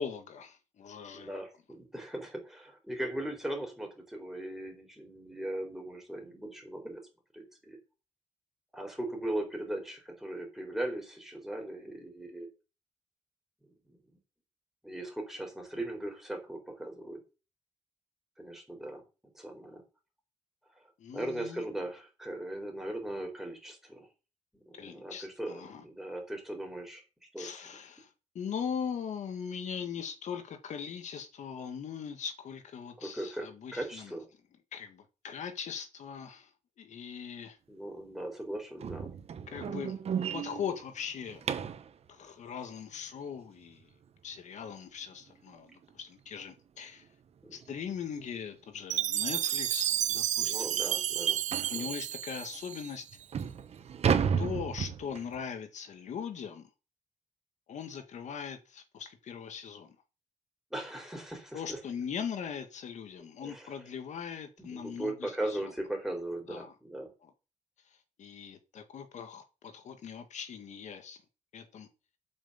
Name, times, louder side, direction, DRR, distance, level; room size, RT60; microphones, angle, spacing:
voice 1, 0.0-1.4 21.0-21.7 24.7-25.8 27.4-34.1 34.7-36.5 36.8-37.6 39.5-41.4 42.1-43.9 44.2-47.1 47.5-50.8 51.7-53.1 54.4-56.7 57.7-60.0 61.5-65.7 66.5-66.7 67.2-67.3 68.2-71.2 71.5-71.9, left 7 dB, 75° left, 1.8 m, -40 dB
voice 2, 1.1-7.0 7.3-7.8 8.7-12.5 13.6-14.2 14.8-17.2 18.4-19.0 19.3-19.8 20.7-20.8 21.1-24.1 24.5-27.0 27.3-27.7 33.0-34.3 37.7-39.1 39.4-39.7 47.4-47.6 50.4-51.4 51.7-51.9 60.7-61.8 63.4-63.7 64.6-67.1, right 1 dB, 5° right, 4.3 m, -39 dB
sound 1, 38.8-41.9 44.7-44.8 45.3-45.5 45.8-45.9 46.4-46.5 47.6-47.7 48.1-48.3 48.9-49.0 49.4-49.5 50.0-50.1 51.5-51.8 52.5-52.6 53.1-55.4, right 7 dB, 60° right, 1.1 m, -33 dB
Chime, 48.9-53.2, right 11 dB, 80° right, 0.5 m, -31 dB
8.5 x 6.2 x 8.1 m
wide cardioid pair, 135°, 12 cm